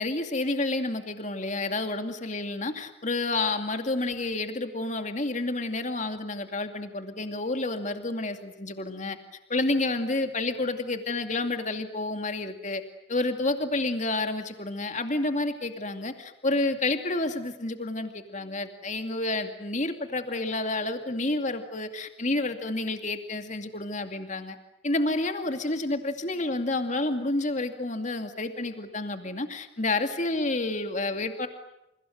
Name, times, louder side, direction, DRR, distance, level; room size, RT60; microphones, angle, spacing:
voice 1, 0.0-9.2 9.5-12.8 13.1-24.6 24.8-31.5, left 2 dB, 35° left, 7 dB, 2.4 m, -29 dB
30.0 x 29.5 x 6.6 m, 0.87 s
head